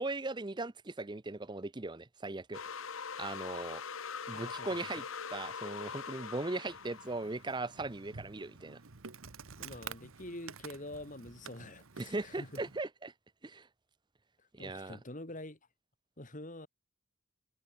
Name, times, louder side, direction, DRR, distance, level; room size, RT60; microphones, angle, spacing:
voice 1, 0.0-2.6 3.2-3.8 4.3-5.0 5.3-8.8 12.0-13.1 13.4-13.7 14.5-15.0, right 2 dB, 20° right, 0.6 m, -38 dB
sound 1, 2.5-7.8, left 6 dB, 70° left, 1.2 m, -43 dB
voice 2, 4.3-5.0 9.6-12.6 14.6-15.6 16.2-16.7, left 1 dB, 35° left, 2.7 m, -46 dB
Insect, 6.7-12.8, right 6 dB, 75° right, 1.2 m, -50 dB
head